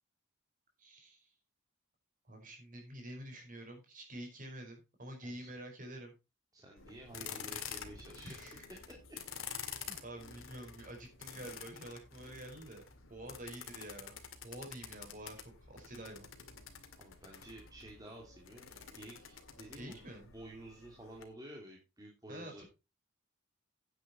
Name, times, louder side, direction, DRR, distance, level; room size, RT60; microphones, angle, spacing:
voice 1, 0.8-1.3 2.3-6.1 7.2-7.3 8.2-8.7 9.8-12.8 13.1-16.3 19.8-20.3 22.3-22.6, right 1 dB, 40° right, 3 dB, 4.8 m, -48 dB
voice 2, 6.5-8.6 10.5-10.6 17.0-22.6, right 1 dB, 20° right, -1 dB, 2.7 m, -52 dB
sound 1, 6.8-21.2, left 7 dB, 90° left, 2.1 m, -49 dB
9.9 x 9.1 x 4.3 m, 0.28 s
head